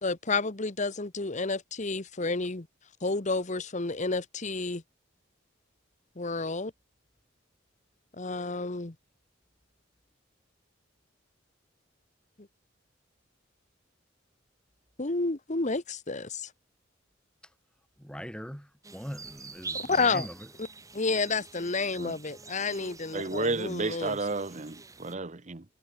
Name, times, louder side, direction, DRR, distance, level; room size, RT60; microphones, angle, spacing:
voice 1, 0.0-2.7 3.0-4.8 6.2-6.7 8.1-8.9 12.4-12.5 15.0-16.5 19.7-20.3 20.9-24.2, left 3 dB, 40° left, 1.2 m, -30 dB
voice 2, 18.0-20.5, equal, 5° left, 5.3 m, -41 dB
sound 1, 18.8-25.1, right 4 dB, 15° right, 2.2 m, -45 dB
voice 3, 23.1-25.6, right 3 dB, 35° right, 1.0 m, -32 dB
head